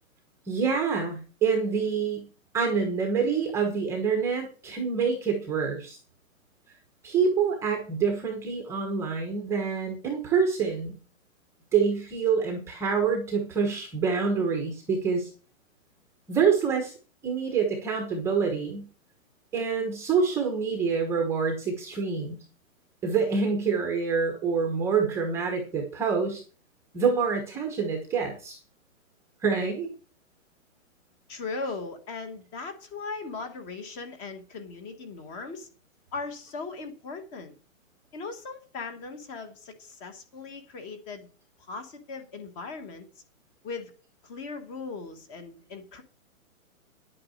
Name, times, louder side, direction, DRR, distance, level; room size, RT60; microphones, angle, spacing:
voice 1, 0.5-2.2 2.5-6.0 7.0-10.9 11.7-15.3 16.3-16.9 17.2-18.8 19.5-22.4 23.0-26.4 26.9-28.6 29.4-29.9, right 5 dB, 5° right, 2 dB, 1.1 m, -26 dB
voice 2, 31.3-35.7 36.1-37.5 38.1-41.3 41.6-43.1 43.6-43.9 44.2-46.0, left 4 dB, 15° left, 8 dB, 1.4 m, -38 dB
10.5 x 8.6 x 6.4 m, 0.37 s
hypercardioid pair, 170°, 41 cm